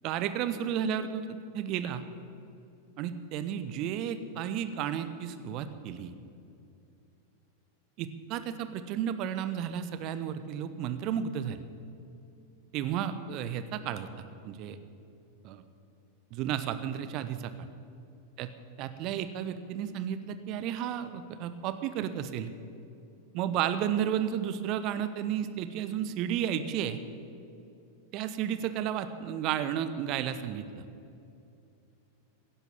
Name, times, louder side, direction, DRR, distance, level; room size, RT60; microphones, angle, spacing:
voice 1, 0.0-2.0 3.0-6.1 8.0-11.6 12.7-14.8 15.4-15.6 16.3-17.7 18.4-18.5 18.8-22.5 23.3-27.0 28.1-30.8, right 9 dB, 40° right, 11 dB, 1.0 m, -33 dB
17.0 x 10.5 x 7.2 m, 2.6 s
figure-of-eight pair, 90°, 0 cm